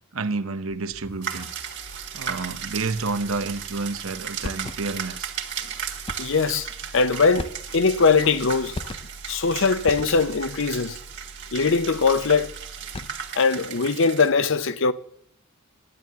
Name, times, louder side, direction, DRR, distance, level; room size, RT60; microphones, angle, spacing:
voice 1, 0.1-1.5 2.1-5.3, right 3 dB, 85° right, 0.9 m, -29 dB
sound 1, 0.7-13.4, right 1 dB, 80° left, 4.0 m, -46 dB
sound 2, 1.2-14.3, right 7 dB, 60° right, 1.7 m, -36 dB
sound 3, 4.4-5.1 6.1-6.5 7.4-8.0 8.7-9.3 9.9-10.5 12.7-13.4, left 2 dB, 25° left, 0.6 m, -36 dB
voice 2, 6.2-6.7 6.9-8.8 9.3-11.0 11.5-12.5 13.4-14.9, left 4 dB, 65° left, 0.7 m, -21 dB
11.0 x 9.4 x 7.4 m
head